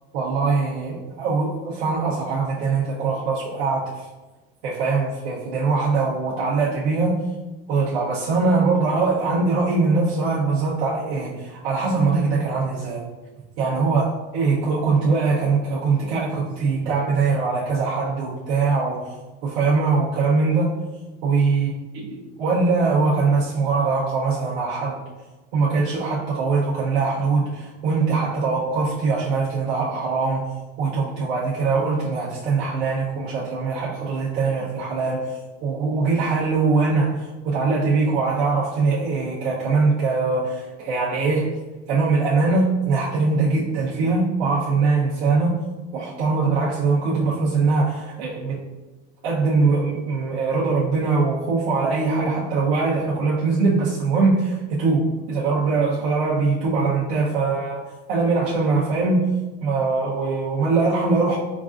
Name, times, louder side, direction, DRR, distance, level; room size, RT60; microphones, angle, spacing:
voice 1, 0.1-4.1 4.6-7.2 7.7-13.0 13.6-14.0 14.3-19.1 19.4-20.8 21.2-21.7 22.0-25.0 25.5-30.4 30.8-35.3 35.6-41.6 41.9-45.6 45.9-48.6 49.2-57.8 58.1-59.3 59.6-61.4, right 4 dB, 80° right, -6 dB, 0.9 m, -22 dB
5.1 x 2.5 x 2.5 m, 1.2 s
cardioid pair, 140°, 29 cm